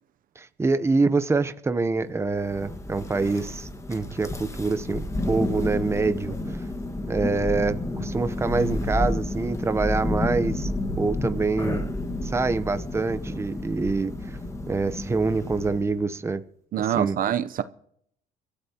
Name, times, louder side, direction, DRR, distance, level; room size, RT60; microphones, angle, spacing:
voice 1, 0.4-6.6 7.1-10.7 11.0-11.8 12.2-14.4 14.7-16.4 16.8-17.2, right 3 dB, 15° right, 0.8 m, -26 dB
Thunder, 2.3-16.0, left 2 dB, 15° left, 1.6 m, -30 dB
voice 2, 16.7-17.6, right 10 dB, 55° right, 0.7 m, -25 dB
25.5 x 13.5 x 2.9 m
cardioid pair, 110°, 17 cm